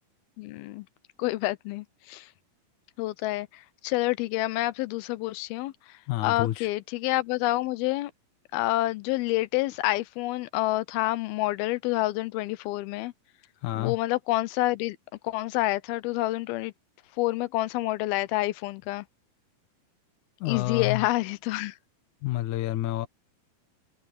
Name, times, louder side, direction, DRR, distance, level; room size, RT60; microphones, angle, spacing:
voice 1, 0.4-0.9 1.2-2.3 3.0-8.1 8.5-13.1 13.8-15.0 15.2-16.7 17.2-19.1 20.5-21.8, left 18 dB, 90° left, 2.6 m, -28 dB
voice 2, 6.1-6.7 13.6-14.0 20.4-21.1 22.2-23.1, left 15 dB, 70° left, 2.1 m, -29 dB
omnidirectional pair, 4.3 m